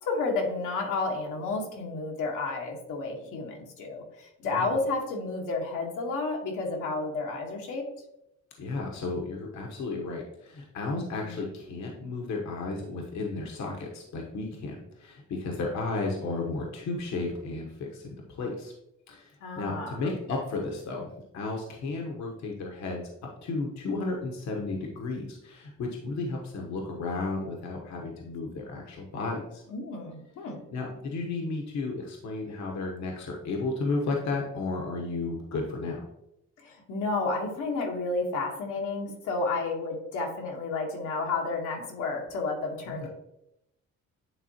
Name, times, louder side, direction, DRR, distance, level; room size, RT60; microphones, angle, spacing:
voice 1, 0.0-7.8 10.9-11.4 19.4-20.1 29.7-30.6 36.6-43.1, left 3 dB, 85° left, 0 dB, 1.4 m, -31 dB
voice 2, 4.4-4.7 8.6-18.7 19.1-21.1 21.3-23.1 23.4-29.6 30.7-36.0 42.9-43.1, left 3 dB, 65° left, 0 dB, 1.1 m, -33 dB
9.2 x 3.6 x 2.9 m, 0.84 s
cardioid pair, 90°, 30 cm